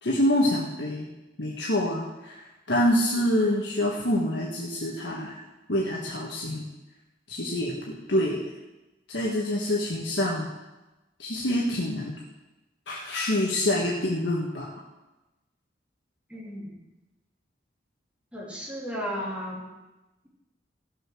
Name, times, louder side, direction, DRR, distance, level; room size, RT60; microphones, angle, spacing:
voice 1, 0.0-1.1 1.4-5.4 5.7-6.7 7.3-8.4 9.1-10.5 11.2-12.1 12.9-14.7, left 1 dB, 75° left, -3 dB, 1.6 m, -26 dB
voice 2, 16.3-16.8 18.3-19.7, equal, 5° right, -4 dB, 3.0 m, -34 dB
16.0 x 6.6 x 6.2 m, 1.1 s
head